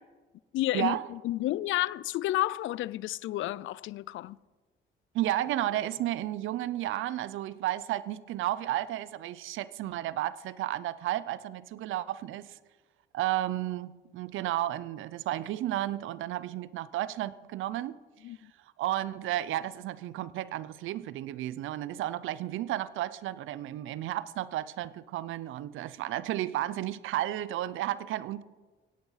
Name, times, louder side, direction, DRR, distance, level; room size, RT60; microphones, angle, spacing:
voice 1, 0.5-4.4 18.2-18.5, left 15 dB, 80° left, 0.4 m, -31 dB
voice 2, 5.1-12.6 13.1-18.0 18.8-28.4, right 14 dB, 85° right, 0.6 m, -32 dB
17.0 x 9.6 x 5.7 m
cardioid pair, 90°, 20 cm